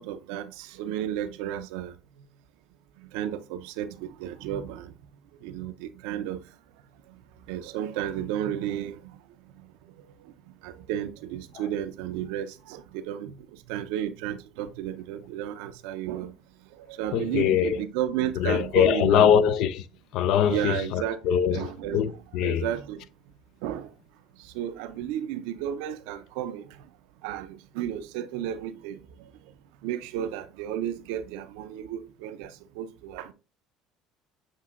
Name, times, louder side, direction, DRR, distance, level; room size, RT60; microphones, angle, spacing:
voice 1, 0.0-1.9 3.0-4.9 5.4-6.4 7.5-9.2 10.6-16.4 16.8-19.5 20.4-21.2 21.5-22.1 22.4-23.1 23.6-23.9 24.4-26.7 27.2-29.0 29.8-33.3, right 10 dB, 80° right, 0.4 m, -33 dB
voice 2, 17.1-17.8 18.4-19.8 20.1-22.6, left 9 dB, 70° left, 0.4 m, -23 dB
7.3 x 2.7 x 2.5 m
supercardioid pair, 80°, 0 cm